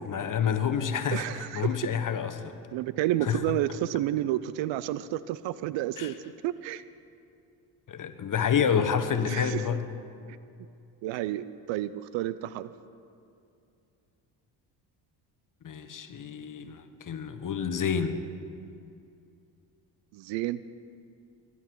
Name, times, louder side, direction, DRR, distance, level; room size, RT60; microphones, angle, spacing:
voice 1, 0.0-2.5 3.2-3.4 6.0-6.1 7.9-9.8 15.6-18.2, left 7 dB, 40° left, 9 dB, 1.3 m, -28 dB
voice 2, 1.1-1.8 2.7-6.1 6.4-6.8 9.2-9.6 10.2-10.4 11.0-12.7 20.1-20.6, right 14 dB, 65° right, 16 dB, 0.6 m, -30 dB
22.0 x 11.0 x 4.7 m, 2.5 s
hypercardioid pair, 60°, 49 cm